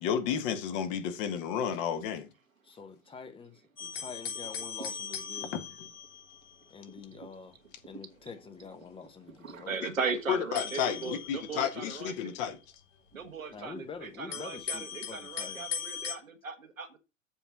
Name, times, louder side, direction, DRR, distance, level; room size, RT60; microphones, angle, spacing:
voice 1, 0.0-2.3 5.5-5.6 9.8-9.9 10.3-12.6, left 8 dB, 45° left, 1.5 m, -31 dB
voice 2, 2.6-5.6 6.7-7.6 7.8-9.9 13.5-15.7, left 5 dB, 15° left, 0.9 m, -46 dB
sound 1, 3.8-6.7 7.1-7.3 7.9-9.0 10.5-12.5 13.2-13.3 14.3-16.1, left 8 dB, 65° left, 3.2 m, -40 dB
voice 3, 9.4-12.3 13.1-17.0, right 5 dB, 80° right, 1.4 m, -38 dB
7.2 x 4.5 x 5.7 m
figure-of-eight pair, 100°, 39 cm